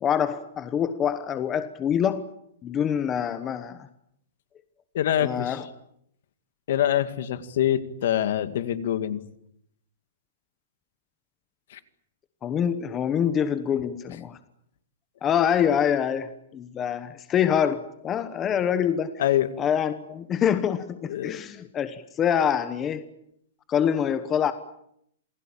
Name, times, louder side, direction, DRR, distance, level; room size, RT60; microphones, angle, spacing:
voice 1, 0.0-2.3 2.6-3.9 5.2-5.6 12.4-14.4 15.2-19.2 19.6-23.1 23.7-24.5, left 8 dB, 15° left, 11 dB, 1.0 m, -25 dB
voice 2, 4.9-5.6 6.7-9.2 11.7-11.8 19.2-19.5 21.1-21.3, left 11 dB, 55° left, 11 dB, 2.2 m, -25 dB
28.0 x 20.5 x 8.8 m, 0.75 s
hypercardioid pair, 170°, 0 cm